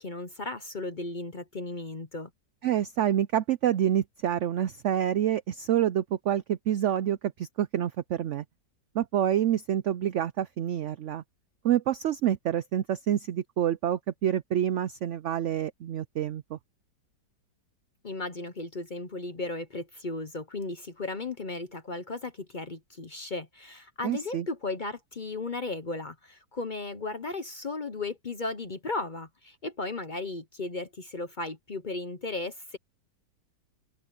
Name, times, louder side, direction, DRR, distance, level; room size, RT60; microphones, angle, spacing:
voice 1, 0.0-2.3 18.0-32.8, left 3 dB, 40° left, 0.8 m, -35 dB
voice 2, 2.6-8.4 8.9-11.2 11.6-16.6 24.0-24.5, right 11 dB, 80° right, 0.6 m, -27 dB
omnidirectional pair, 1.8 m